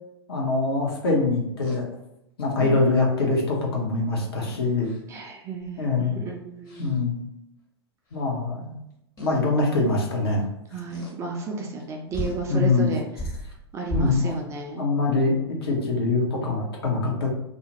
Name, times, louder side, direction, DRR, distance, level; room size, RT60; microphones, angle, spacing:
voice 1, 0.3-1.8 2.4-4.9 5.8-6.2 6.8-7.2 8.1-8.8 9.2-10.5 12.5-12.9 13.9-14.4 14.8-17.3, left 3 dB, 60° left, -1 dB, 0.8 m, -23 dB
sound 1, 1.6-1.8 4.5-5.2 5.6-5.9 6.7-7.0 8.1-8.2 9.2-9.5 10.9-11.2 11.8-11.9 12.1-12.5 13.1-14.4, equal, 25° left, 0.8 m, -34 dB
voice 2, 5.1-7.0 10.7-13.1 13.7-14.9, right 4 dB, 20° right, 1 dB, 0.4 m, -32 dB
2.4 x 2.1 x 2.8 m, 0.85 s
figure-of-eight pair, 100°, 14 cm